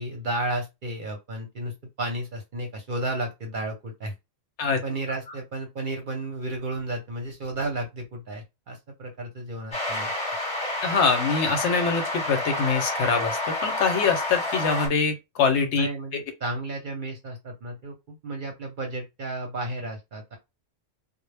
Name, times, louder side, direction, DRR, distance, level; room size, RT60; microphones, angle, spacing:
voice 1, 0.0-4.1 4.8-10.1 15.8-20.4, right 2 dB, 50° right, 0.7 m, -33 dB
sound 1, 9.7-14.9, left 1 dB, 5° left, 0.9 m, -29 dB
voice 2, 10.8-15.9, left 5 dB, 70° left, 0.9 m, -24 dB
2.0 x 2.0 x 3.2 m
omnidirectional pair, 1.3 m